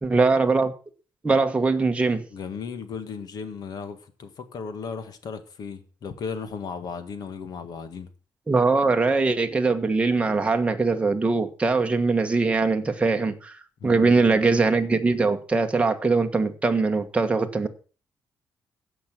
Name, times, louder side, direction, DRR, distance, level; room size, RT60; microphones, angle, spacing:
voice 1, 0.0-0.7 1.2-2.2 8.5-13.6 13.8-17.7, right 3 dB, 15° right, 1.4 m, -22 dB
voice 2, 2.3-8.1 13.8-14.4, left 5 dB, 60° left, 1.7 m, -36 dB
16.0 x 6.1 x 6.0 m
cardioid pair, 135°, 8 cm